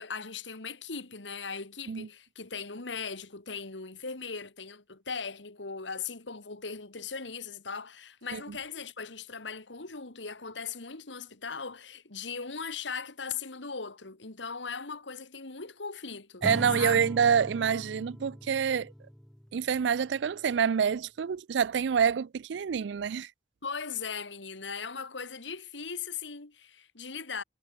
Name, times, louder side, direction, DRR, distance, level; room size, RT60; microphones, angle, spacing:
voice 1, 0.0-16.4 16.8-17.1 23.6-27.4, left 5 dB, 85° left, 2.2 m, -39 dB
Acoustic guitar / Strum, 16.4-19.8, equal, ahead, 0.5 m, -40 dB
voice 2, 16.4-18.9 19.5-23.3, right 7 dB, 70° right, 0.4 m, -27 dB
head